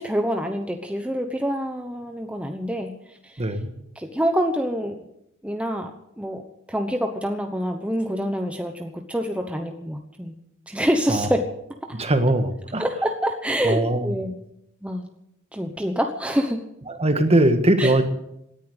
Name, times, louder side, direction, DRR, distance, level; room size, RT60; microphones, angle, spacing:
voice 1, 0.0-2.9 3.2-3.4 4.0-5.0 5.4-5.9 6.2-6.4 6.7-10.4 10.7-11.4 11.9-12.0 12.8-14.4 14.8-15.0 15.5-16.6 17.8-17.9, equal, 5° right, 4 dB, 1.0 m, -26 dB
voice 2, 3.4-3.7 11.1-11.3 11.9-12.8 13.6-14.1 16.9-18.0, right 1 dB, 30° right, 8 dB, 1.6 m, -20 dB
18.0 x 10.0 x 8.0 m, 0.81 s
head